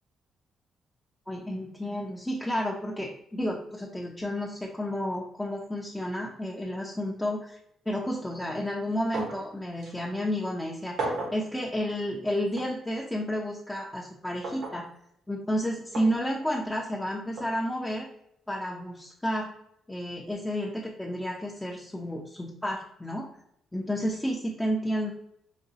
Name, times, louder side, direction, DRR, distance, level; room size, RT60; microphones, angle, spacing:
voice 1, 1.3-7.6 7.9-14.9 15.3-18.1 18.5-19.5 19.9-23.3 23.7-25.1, equal, 10° left, -3 dB, 0.6 m, -31 dB
sound 1, 9.1-9.5 9.8-9.9 11.0-11.4 12.6-12.7 14.4-14.8 15.9-16.1 17.4-17.5, right 2 dB, 75° right, 1.2 m, -33 dB
5.0 x 2.3 x 2.7 m, 0.75 s
cardioid pair, 90°, 0 cm